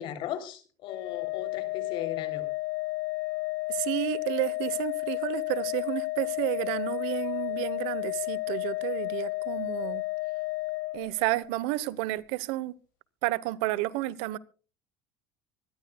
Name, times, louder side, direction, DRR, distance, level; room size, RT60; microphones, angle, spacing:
voice 1, 0.0-2.5, left 10 dB, 60° left, 3.0 m, -37 dB
Organ, 0.9-11.6, left 23 dB, 80° left, 1.3 m, -32 dB
voice 2, 3.7-10.1 10.9-12.7 13.2-14.4, right 17 dB, 75° right, 0.9 m, -31 dB
25.0 x 12.5 x 2.2 m
supercardioid pair, 90°, 9 cm